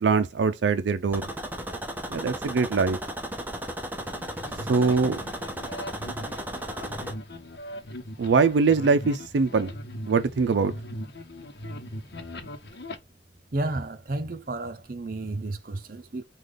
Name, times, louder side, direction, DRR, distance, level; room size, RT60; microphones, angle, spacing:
voice 1, 0.0-1.3 2.1-3.0 4.7-5.2 8.2-9.7 10.1-10.7, right 4 dB, 85° right, 0.4 m, -22 dB
sound 1, 1.1-7.1, right 1 dB, 10° right, 0.7 m, -35 dB
sound 2, 4.0-13.0, left 1 dB, 65° left, 0.8 m, -40 dB
voice 2, 13.5-16.2, right 2 dB, 55° right, 0.7 m, -32 dB
5.0 x 2.4 x 3.8 m
head